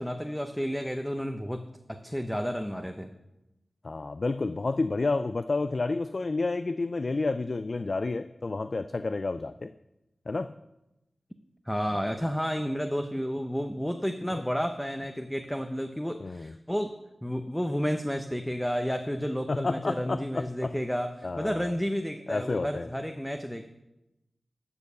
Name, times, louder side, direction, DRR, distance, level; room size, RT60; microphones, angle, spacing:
voice 1, 0.0-3.1 11.7-23.8, equal, 5° left, 6 dB, 0.7 m, -31 dB
voice 2, 3.8-9.7 10.3-10.5 14.3-14.4 16.2-16.5 19.5-20.8 21.2-21.7 22.3-22.9, left 3 dB, 55° left, 11 dB, 0.3 m, -30 dB
12.0 x 4.6 x 6.7 m, 0.94 s
cardioid pair, 40°, 0 cm